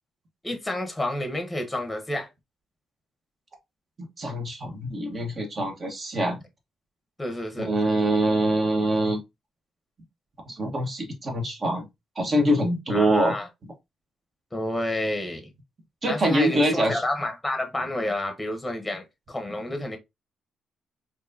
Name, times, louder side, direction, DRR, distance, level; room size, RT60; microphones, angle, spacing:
voice 1, 0.4-2.3 7.2-7.7 12.9-13.5 14.5-15.5 16.1-20.0, left 1 dB, 10° left, 1.0 m, -30 dB
voice 2, 4.2-6.4 7.6-9.2 10.5-11.9 12.2-13.3 16.0-17.0, right 1 dB, 40° right, 1.3 m, -24 dB
4.5 x 2.7 x 2.6 m
cardioid pair, 90°, 0 cm